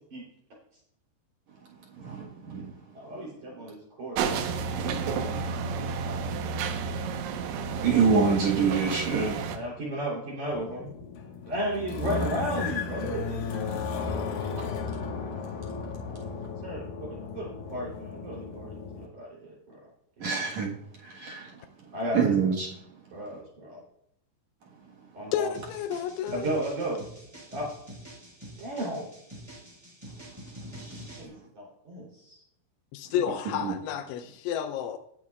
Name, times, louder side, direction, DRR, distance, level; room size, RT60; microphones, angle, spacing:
voice 1, 2.0-2.7 5.3-5.5 7.8-9.4 20.2-20.8 21.0-21.5 22.1-22.7, right 5 dB, 70° right, -2 dB, 1.7 m, -25 dB
voice 2, 2.9-5.1 5.6-6.5 7.9-8.0 9.3-10.9 11.5-13.8 16.1-16.2 16.6-16.8 17.3-19.8 20.2-20.3 21.9-22.3 23.1-23.8 25.1-25.5 26.3-27.0 27.5-27.7 28.6-29.1 31.2-32.4, right 1 dB, 45° right, -4 dB, 4.2 m, -35 dB
sound 1, 4.2-9.6, right 5 dB, 85° right, 3.5 m, -31 dB
sound 2, 10.5-19.1, left 5 dB, 65° left, 2.5 m, -35 dB
voice 3, 25.3-26.6 32.9-35.0, left 9 dB, 85° left, 8 dB, 3.0 m, -31 dB
sound 3, 25.5-31.2, equal, 5° right, 3.5 m, -46 dB
19.0 x 9.9 x 2.4 m, 0.74 s
omnidirectional pair, 5.4 m